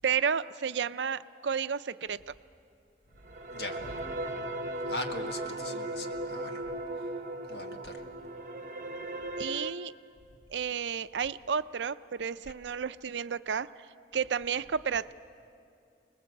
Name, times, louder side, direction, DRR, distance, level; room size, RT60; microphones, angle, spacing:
voice 1, 0.0-2.3 9.4-9.9 10.5-13.7 14.1-15.1, right 7 dB, 90° right, 14 dB, 0.5 m, -31 dB
sound 1, 3.2-9.7, right 1 dB, 50° right, 1.0 m, -37 dB
voice 2, 3.5-4.1 4.9-6.7 7.5-8.1, left 2 dB, 70° left, 4 dB, 1.8 m, -40 dB
26.5 x 20.0 x 7.8 m, 2.5 s
head